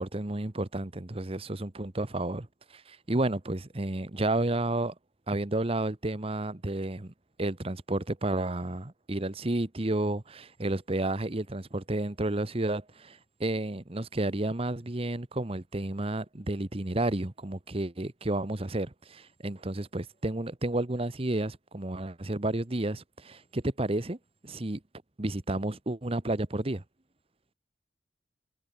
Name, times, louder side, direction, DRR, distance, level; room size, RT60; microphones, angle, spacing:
voice 1, 0.0-2.5 2.7-4.9 5.3-7.1 7.4-24.2 24.4-24.8 25.2-26.8, right 2 dB, 30° right, 1.1 m, -31 dB
head